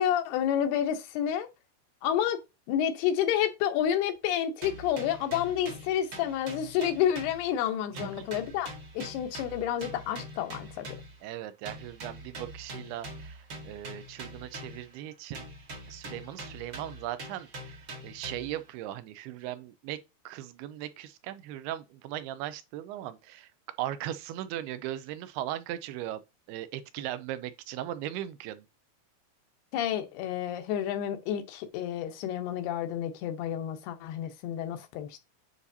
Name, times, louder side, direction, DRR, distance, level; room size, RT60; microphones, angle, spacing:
voice 1, 0.0-1.5 2.0-2.4 2.7-8.7 8.9-10.9 29.7-35.2, left 10 dB, 85° left, 2.9 m, -29 dB
sound 1, 4.6-7.7 8.0-11.2 11.6-15.0 15.3-18.7, right 1 dB, 50° right, 1.5 m, -44 dB
voice 2, 7.9-8.3 11.2-15.5 15.9-20.0 20.3-23.5 23.8-26.2 26.5-28.7, right 13 dB, 90° right, 2.6 m, -38 dB
9.5 x 4.2 x 2.7 m
omnidirectional pair, 4.5 m